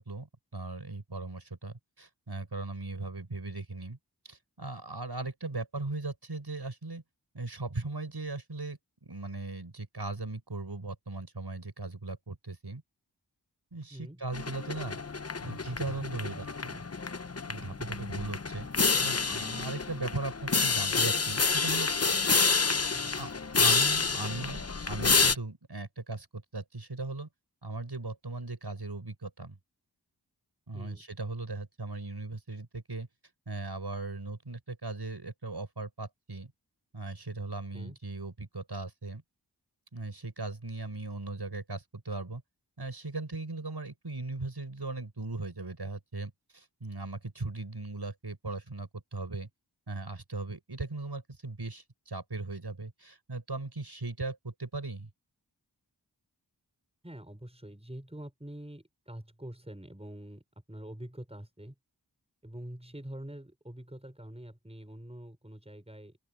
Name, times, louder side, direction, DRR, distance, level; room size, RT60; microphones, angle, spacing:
voice 1, 0.0-4.0 4.2-7.0 7.3-12.8 13.7-15.0 15.4-16.8 17.5-18.7 19.0-21.9 22.8-27.3 27.6-29.6 30.7-33.1 33.5-36.5 36.9-39.2 39.9-42.4 42.8-49.5 49.9-55.1, right 2 dB, 75° right, 5.6 m, -38 dB
voice 2, 13.9-14.2 22.9-23.4 30.7-31.0 37.7-38.0 57.0-60.4 60.7-61.7 62.4-66.2, right 1 dB, 15° right, 5.4 m, -45 dB
sound 1, 14.3-25.3, left 4 dB, 35° left, 0.8 m, -28 dB
open air
wide cardioid pair, 40°, 40 cm